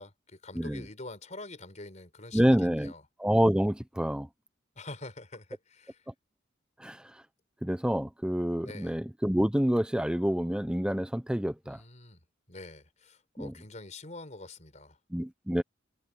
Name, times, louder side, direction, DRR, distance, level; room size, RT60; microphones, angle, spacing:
voice 1, 0.0-3.0 4.7-6.0 8.6-9.0 11.6-12.2 12.5-15.0, left 2 dB, 35° left, 4.7 m, -45 dB
voice 2, 2.3-2.9 3.2-4.3 6.8-7.0 7.6-11.8 13.4-13.5 15.1-15.6, equal, 5° right, 0.7 m, -27 dB
head